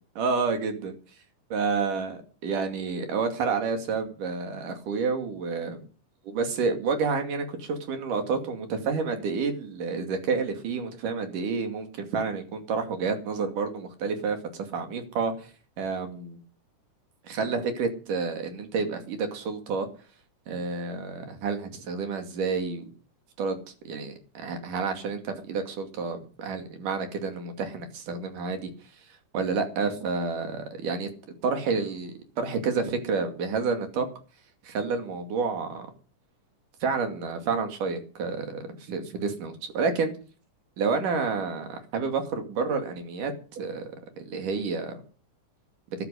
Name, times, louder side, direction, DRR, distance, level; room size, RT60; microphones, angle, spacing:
voice 1, 0.2-0.9 1.5-5.8 6.3-15.5 15.8-16.4 17.2-19.9 20.5-22.9 23.4-28.7 29.3-31.1 31.4-34.1 34.6-35.9 36.8-40.1 40.8-45.0, right 4 dB, 80° right, 6 dB, 4.0 m, -29 dB
13.0 x 12.0 x 6.4 m, 0.38 s
omnidirectional pair, 3.7 m